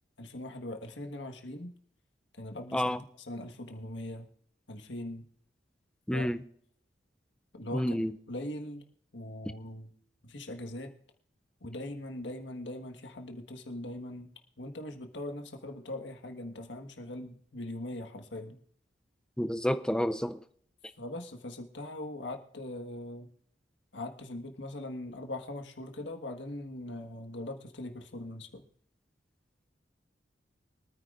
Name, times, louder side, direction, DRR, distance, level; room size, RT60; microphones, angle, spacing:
voice 1, 0.2-1.7 2.4-4.3 4.7-5.2 6.1-6.3 7.5-8.0 8.3-8.8 9.1-9.9 10.2-10.9 11.6-14.3 14.6-18.6 21.0-23.3 23.9-28.6, left 1 dB, 90° left, 1.6 m, -41 dB
voice 2, 6.1-6.4 7.7-8.1 19.4-20.4, equal, 5° left, 0.5 m, -29 dB
24.5 x 9.6 x 2.6 m
head